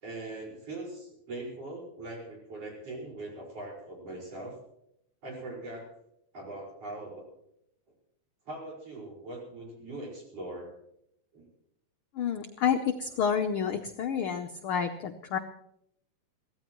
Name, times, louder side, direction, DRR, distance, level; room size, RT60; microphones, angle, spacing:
voice 1, 0.0-4.6 5.2-5.9 6.3-7.2 8.5-10.7 11.3-11.5, right 2 dB, 55° right, -2 dB, 6.2 m, -41 dB
voice 2, 12.2-15.4, left 7 dB, 70° left, 6 dB, 1.3 m, -29 dB
23.5 x 16.0 x 3.1 m, 0.77 s
omnidirectional pair, 3.3 m